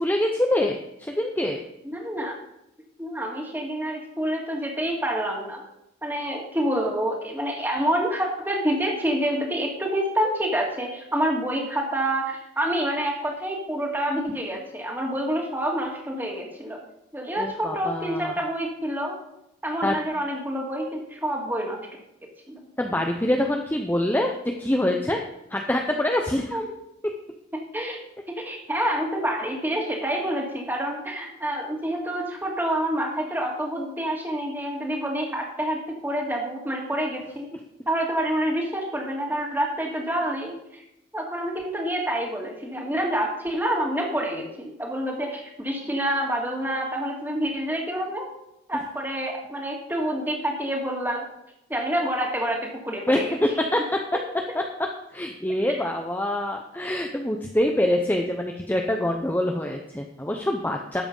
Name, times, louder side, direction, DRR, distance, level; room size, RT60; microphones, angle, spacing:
voice 1, 0.0-1.6 17.4-18.3 19.8-20.0 22.8-25.2 25.5-26.6 53.1-53.3 53.6-54.0 55.1-61.0, left 1 dB, 10° left, 2 dB, 0.7 m, -25 dB
voice 2, 1.8-2.3 3.0-5.6 6.0-16.8 17.1-19.2 19.6-21.8 22.5-22.6 26.5-26.6 27.7-28.0 28.3-37.5 37.9-40.8 41.1-48.3 48.7-51.2 51.7-53.4, right 1 dB, 10° right, 0 dB, 2.2 m, -27 dB
12.5 x 7.7 x 5.4 m, 0.83 s
head